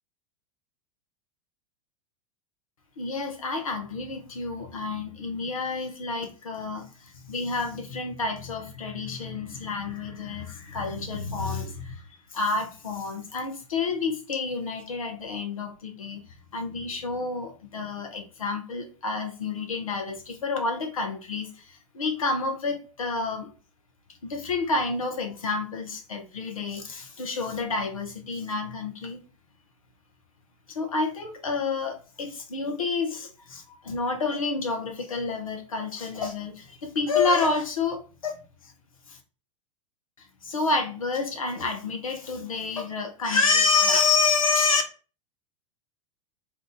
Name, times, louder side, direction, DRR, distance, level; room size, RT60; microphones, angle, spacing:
voice 1, 3.0-12.0 12.3-16.2 16.5-21.5 21.9-23.5 24.2-29.2 30.7-38.4 39.1-39.2 40.4-44.8, left 4 dB, 85° left, 0.8 m, -29 dB
2.8 x 2.4 x 3.6 m
hypercardioid pair, 100°, 17 cm